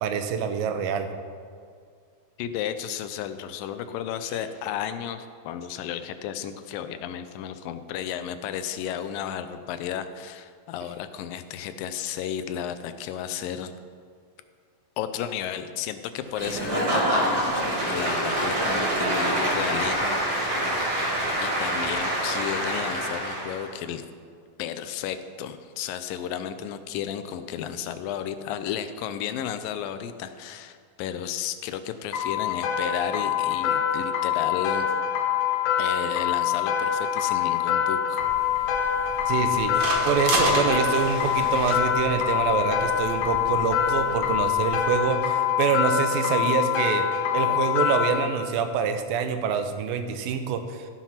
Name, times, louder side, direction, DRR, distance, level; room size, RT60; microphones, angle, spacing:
voice 1, 0.0-1.1 39.3-47.0 47.3-50.9, right 7 dB, 85° right, 7 dB, 2.5 m, -26 dB
voice 2, 2.4-13.7 15.0-20.8 21.4-24.0 24.6-34.9 35.8-38.2, left 9 dB, 80° left, 10 dB, 2.3 m, -33 dB
Applause / Crowd, 16.3-23.7, right 1 dB, 30° right, 2.7 m, -26 dB
sound 1, 32.1-48.3, left 9 dB, 65° left, 1.9 m, -25 dB
sound 2, 38.2-45.0, right 2 dB, 60° right, 2.7 m, -32 dB
14.0 x 5.9 x 5.7 m, 2.2 s
omnidirectional pair, 4.1 m